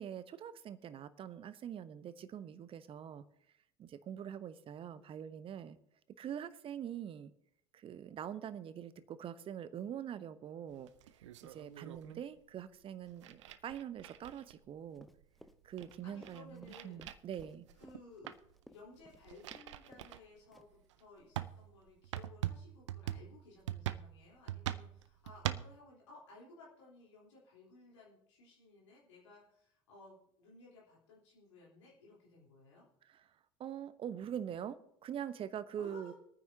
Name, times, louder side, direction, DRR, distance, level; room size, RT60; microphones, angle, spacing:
voice 1, 0.0-3.2 3.8-5.8 6.2-7.3 7.7-10.9 11.4-15.1 15.6-17.7 33.6-36.1, right 9 dB, 35° right, 14 dB, 0.9 m, -44 dB
sound 1, 10.7-12.2 13.1-14.7 15.2-15.3 15.5-18.0 18.3-18.5 19.0-20.2 20.8-20.9 21.3-25.8, right 13 dB, 65° right, 0.6 m, -42 dB
Run, 14.9-19.7 19.9-20.1 20.5-20.9, equal, ahead, 0.7 m, -59 dB
voice 2, 16.0-17.0 17.7-18.4 18.7-32.9 35.8-36.1, left 2 dB, 65° left, -4 dB, 3.8 m, -58 dB
25.0 x 9.4 x 2.8 m, 0.72 s
figure-of-eight pair, 70°, 16 cm